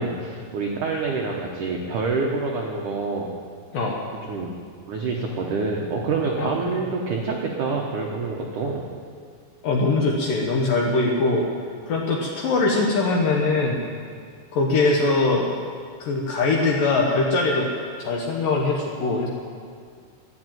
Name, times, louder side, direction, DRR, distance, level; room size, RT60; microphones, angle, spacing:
voice 1, 0.0-3.3 4.2-4.5 4.9-8.8, right 4 dB, 80° right, 0 dB, 1.8 m, -27 dB
voice 2, 9.6-11.5 11.9-13.8 14.5-15.4 16.0-17.7 18.0-19.3, left 3 dB, 65° left, -1 dB, 2.3 m, -22 dB
12.5 x 11.0 x 9.2 m, 2.1 s
omnidirectional pair, 5.4 m